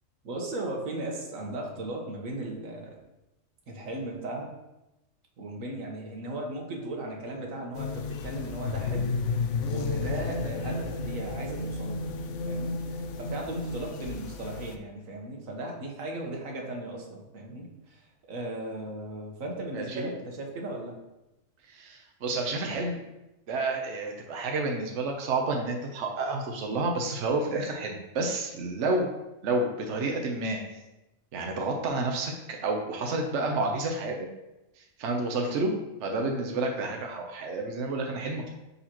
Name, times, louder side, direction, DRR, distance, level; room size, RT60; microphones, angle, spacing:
voice 1, 0.2-3.0 3.7-4.5 5.4-12.1 12.5-21.0, right 1 dB, 80° right, 0 dB, 1.6 m, -37 dB
sound 1, 7.7-14.8, left 4 dB, 70° left, 0.9 m, -32 dB
voice 2, 19.7-20.1 21.7-23.0 23.5-29.1 29.4-30.6 31.3-34.3 34.8-38.5, right 2 dB, 65° right, 2 dB, 1.1 m, -30 dB
10.5 x 4.1 x 3.0 m, 0.96 s
omnidirectional pair, 1.4 m